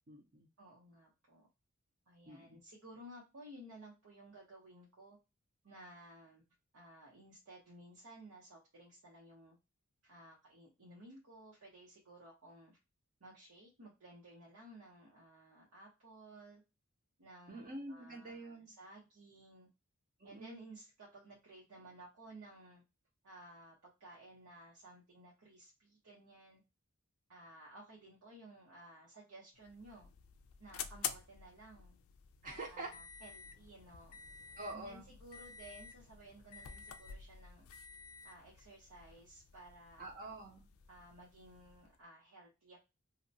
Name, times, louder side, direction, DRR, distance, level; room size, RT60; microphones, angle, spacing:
voice 1, 0.1-0.5 2.3-2.6 17.5-18.7 20.2-20.7 32.4-32.9 34.6-35.1 40.0-40.6, right 2 dB, 40° right, 1 dB, 0.6 m, -46 dB
voice 2, 0.6-1.5 2.1-5.2 5.6-6.4 6.7-9.6 10.0-12.8 13.2-16.6 17.2-19.7 20.2-22.8 23.2-26.6 27.3-30.1 30.6-32.0 32.4-34.1 34.7-37.7 38.2-40.0 40.9-42.8, right 1 dB, 85° right, -4 dB, 0.8 m, -56 dB
sound 1, 29.5-42.0, left 8 dB, 70° left, 0.3 m, -50 dB
2.8 x 2.1 x 2.5 m, 0.26 s
head